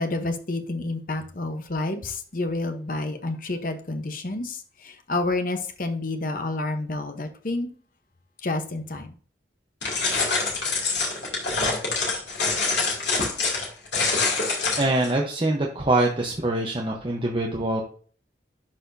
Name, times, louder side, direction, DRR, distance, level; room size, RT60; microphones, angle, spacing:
voice 1, 0.0-7.7 8.4-9.1, left 2 dB, 50° left, 7 dB, 0.9 m, -29 dB
sound 1, 9.8-15.1, left 3 dB, 70° left, 2.6 m, -25 dB
voice 2, 14.8-17.8, right 2 dB, 30° right, 0 dB, 0.9 m, -24 dB
11.5 x 4.3 x 2.6 m, 0.44 s
head